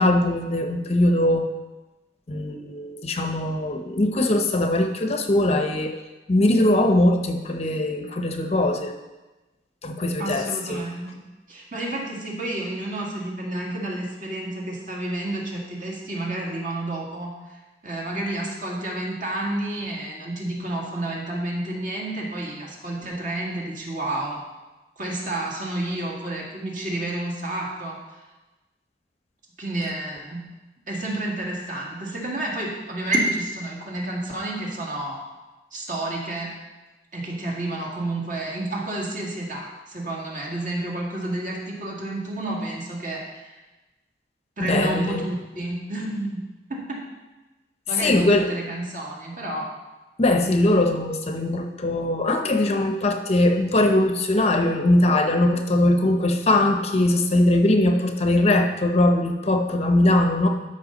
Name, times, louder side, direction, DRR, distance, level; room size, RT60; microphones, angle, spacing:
voice 1, 0.0-1.5 2.3-6.0 6.3-8.9 9.8-10.8 44.6-45.2 48.0-48.5 50.2-60.5, left 1 dB, 35° left, 5 dB, 0.7 m, -21 dB
voice 2, 10.2-24.4 25.0-28.2 29.6-30.5 30.9-35.2 35.7-36.5 37.1-43.6 44.6-47.1 47.9-49.7, right 1 dB, 50° right, -3 dB, 2.0 m, -30 dB
13.0 x 5.6 x 3.9 m, 1.1 s
head